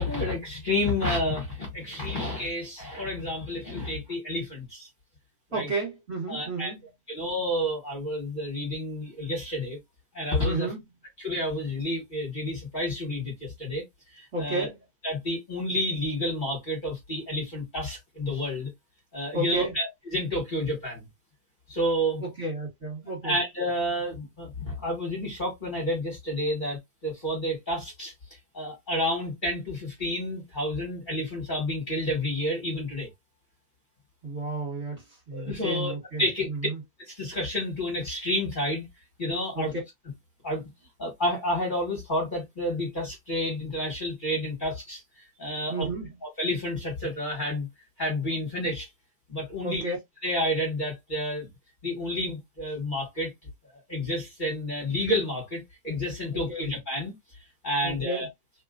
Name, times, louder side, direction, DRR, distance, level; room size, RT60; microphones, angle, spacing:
voice 1, 0.0-4.9 5.5-5.7 6.3-6.7 7.1-9.8 10.1-10.7 11.2-13.8 14.1-14.7 15.0-18.7 19.1-21.1 21.7-22.2 23.2-28.1 28.5-33.1 35.3-35.9 36.2-36.5 37.1-38.9 39.2-39.7 40.4-40.6 41.0-45.0 45.4-45.9 46.4-47.7 48.0-48.9 49.3-49.9 50.2-51.5 51.8-53.3 53.9-57.1 57.6-58.3, left 1 dB, 30° left, 1.7 m, -30 dB
voice 2, 5.5-6.8 10.4-10.8 14.3-14.8 19.3-19.8 22.2-23.4 34.2-36.8 39.5-39.8 45.7-46.2 49.6-50.0 56.5-56.7 57.8-58.3, right 2 dB, 45° right, 2.1 m, -32 dB
3.6 x 2.9 x 2.4 m
omnidirectional pair, 1.7 m